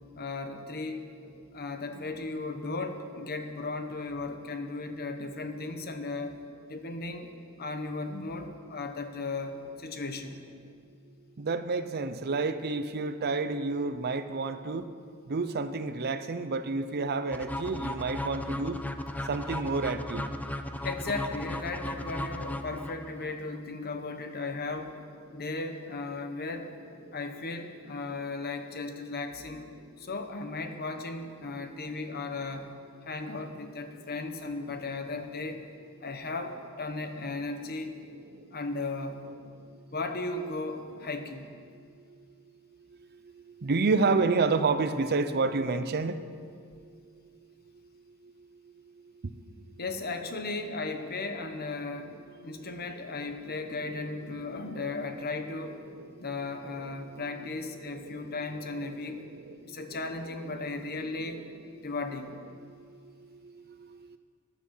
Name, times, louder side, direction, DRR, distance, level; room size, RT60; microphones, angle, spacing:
voice 1, 0.1-1.1 1.5-6.4 6.7-7.3 7.6-10.4 20.8-25.0 25.3-26.7 27.1-29.7 30.0-32.8 33.0-35.6 36.0-37.9 38.5-39.3 39.9-41.6 49.8-52.2 52.4-55.8 56.2-59.2 59.6-61.4 61.8-62.3, left 3 dB, 45° left, 7 dB, 1.0 m, -36 dB
voice 2, 11.4-14.8 15.3-18.8 19.3-20.2 43.6-46.2 58.0-58.4 58.9-59.2 59.9-60.0 61.0-61.4, right 4 dB, 45° right, 11 dB, 0.6 m, -29 dB
sound 1, 17.3-23.3, left 1 dB, 5° left, 0.5 m, -36 dB
14.5 x 10.5 x 5.6 m, 2.2 s
head